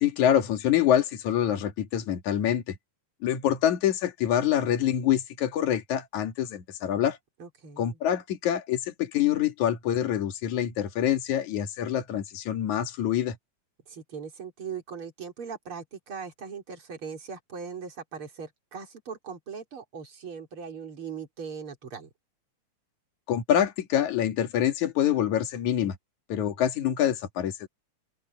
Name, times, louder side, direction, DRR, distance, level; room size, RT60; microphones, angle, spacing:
voice 1, 0.0-2.8 3.2-7.2 7.8-13.4 23.3-26.0 26.3-27.7, left 10 dB, 70° left, 3.3 m, -26 dB
voice 2, 7.4-8.0 13.9-22.1, right 6 dB, 40° right, 4.4 m, -39 dB
omnidirectional pair, 3.6 m